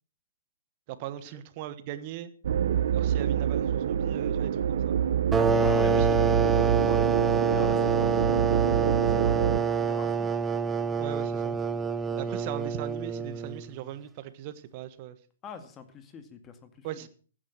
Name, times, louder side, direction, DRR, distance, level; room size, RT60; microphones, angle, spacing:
voice 1, 0.9-2.3 2.9-5.0 6.0-6.1 11.0-11.6 12.2-15.2 16.8-17.1, right 12 dB, 40° right, 13 dB, 1.5 m, -39 dB
sound 1, 2.4-9.6, right 9 dB, 60° right, 0.8 m, -26 dB
sound 2, 5.3-13.7, right 5 dB, 15° right, 0.8 m, -26 dB
voice 2, 5.6-10.5 15.4-16.9, left 6 dB, 20° left, 9 dB, 2.2 m, -44 dB
15.5 x 9.5 x 6.0 m, 0.40 s
figure-of-eight pair, 120°, 0 cm